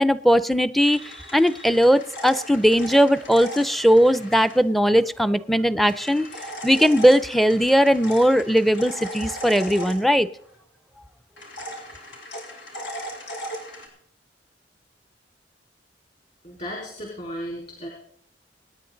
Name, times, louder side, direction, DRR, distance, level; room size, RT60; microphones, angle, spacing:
voice 1, 0.0-6.3 6.6-10.3, equal, ahead, 14 dB, 0.5 m, -19 dB
sound 1, 0.8-4.6 5.8-10.5 11.4-13.9, equal, 90° left, 5.5 m, -38 dB
voice 2, 16.4-17.9, equal, 45° left, -2 dB, 4.3 m, -34 dB
26.5 x 9.9 x 3.9 m, 0.65 s
head